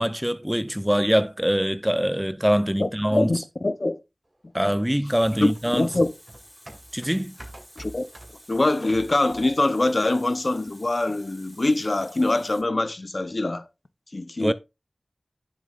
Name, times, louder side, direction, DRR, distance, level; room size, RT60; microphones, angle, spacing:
voice 1, 0.0-3.3 4.5-5.9 6.9-7.4 14.4-14.5, equal, 10° right, 0.6 m, -23 dB
voice 2, 2.8-4.0 5.4-6.1 7.8-8.1 8.5-13.7 14.1-14.5, left 2 dB, 55° left, 0.7 m, -24 dB
Water tap faucet, 5.0-12.6, equal, 10° left, 3.7 m, -51 dB
sound 1, 5.5-9.6 10.0-10.1, right 1 dB, 30° right, 2.5 m, -45 dB
10.5 x 6.9 x 2.4 m
wide cardioid pair, 40°, 0 cm